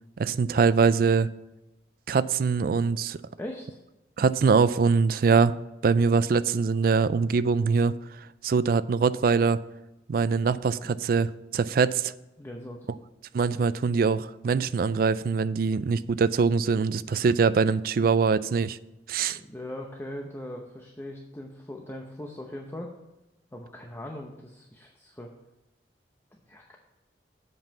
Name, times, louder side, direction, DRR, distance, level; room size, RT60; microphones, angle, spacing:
voice 1, 0.2-1.3 2.1-3.2 4.2-5.6 5.8-7.9 8.4-9.6 10.1-12.1 13.3-18.8 19.1-19.4, right 5 dB, 55° right, 0.3 m, -23 dB
voice 2, 3.4-3.8 12.4-12.9 19.3-22.9 23.5-25.3 26.5-26.6, left 1 dB, 15° left, 0.7 m, -40 dB
7.9 x 5.4 x 7.0 m
head